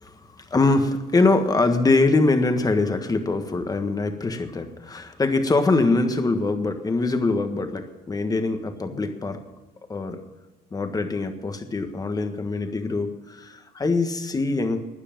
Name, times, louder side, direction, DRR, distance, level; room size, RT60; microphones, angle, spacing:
voice 1, 0.0-9.4 9.9-10.2 10.7-14.8, left 3 dB, 20° left, 7 dB, 1.5 m, -23 dB
12.5 x 9.8 x 7.5 m, 1.2 s
cardioid pair, 110°, 17 cm